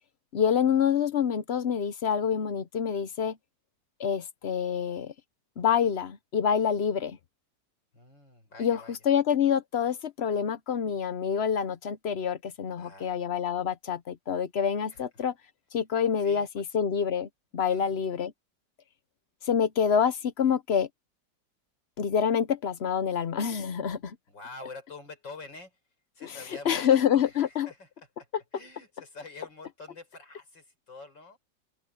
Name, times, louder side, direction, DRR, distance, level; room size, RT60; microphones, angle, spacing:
voice 1, 0.3-3.4 4.0-5.1 5.6-7.2 8.6-15.3 15.7-18.3 19.4-20.9 22.0-24.2 26.2-27.7, left 7 dB, 55° left, 0.7 m, -27 dB
voice 2, 7.9-9.0 12.8-13.2 14.9-15.0 16.2-16.8 17.7-18.0 24.3-25.8 26.1-31.4, left 3 dB, 85° left, 6.5 m, -47 dB
open air
omnidirectional pair, 2.0 m